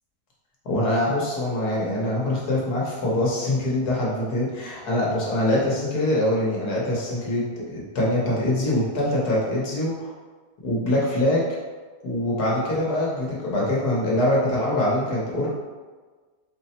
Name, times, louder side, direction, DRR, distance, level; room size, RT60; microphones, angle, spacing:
voice 1, 0.6-10.1 10.6-11.5 12.0-15.5, left 1 dB, 75° left, -4 dB, 1.5 m, -24 dB
4.4 x 2.0 x 4.1 m, 1.4 s
omnidirectional pair, 1.7 m